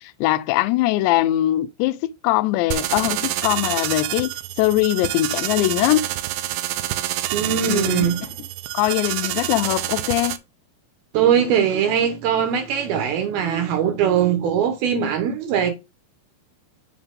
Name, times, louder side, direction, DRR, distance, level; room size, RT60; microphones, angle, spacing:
voice 1, 0.2-4.3 4.6-6.1 7.7-8.1 8.7-10.4, left 16 dB, 85° left, 2.8 m, -21 dB
sound 1, 2.7-10.4, right 15 dB, 85° right, 3.0 m, -27 dB
voice 2, 7.3-8.3 11.1-15.7, right 8 dB, 70° right, 2.6 m, -21 dB
7.4 x 5.8 x 3.7 m
omnidirectional pair, 5.2 m